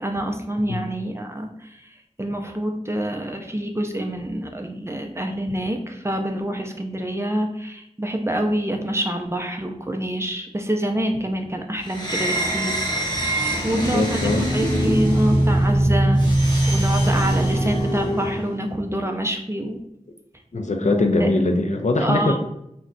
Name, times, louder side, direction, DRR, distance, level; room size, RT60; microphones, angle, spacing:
voice 1, 0.0-1.5 2.2-12.8 13.1-13.2 13.6-14.2 14.5-16.2 16.7-19.8 20.8-21.3 22.0-22.4, right 1 dB, 20° right, 3 dB, 0.4 m, -26 dB
sound 1, 11.9-18.5, right 1 dB, 35° left, 0.9 m, -21 dB
voice 2, 13.7-14.5 20.5-22.4, left 2 dB, 65° left, 4 dB, 0.4 m, -22 dB
2.3 x 2.1 x 3.8 m, 0.81 s
wide cardioid pair, 40°, 13 cm